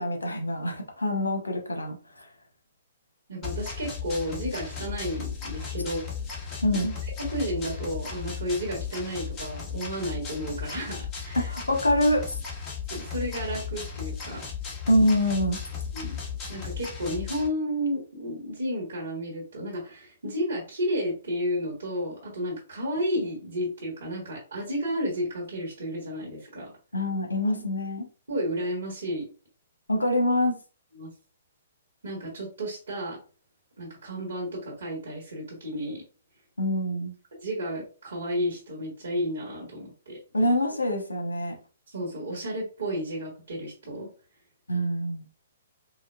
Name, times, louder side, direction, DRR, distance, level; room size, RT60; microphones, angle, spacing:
voice 1, 0.0-2.3 6.6-6.9 11.4-12.4 14.9-15.6 26.9-28.1 29.9-30.6 36.6-37.1 40.3-41.5 44.7-45.2, left 1 dB, 90° left, 3 dB, 1.0 m, -25 dB
voice 2, 3.3-6.0 6.7-6.8 7.3-11.5 12.9-14.4 15.9-16.2 16.5-26.7 28.3-29.3 31.0-31.1 32.0-33.2 33.8-36.0 37.4-40.2 41.9-44.1, equal, 75° right, -3 dB, 1.6 m, -32 dB
sound 1, 3.4-17.5, left 6 dB, 25° left, 1.1 m, -35 dB
4.8 x 2.2 x 2.3 m, 0.36 s
hypercardioid pair, 125°, 0 cm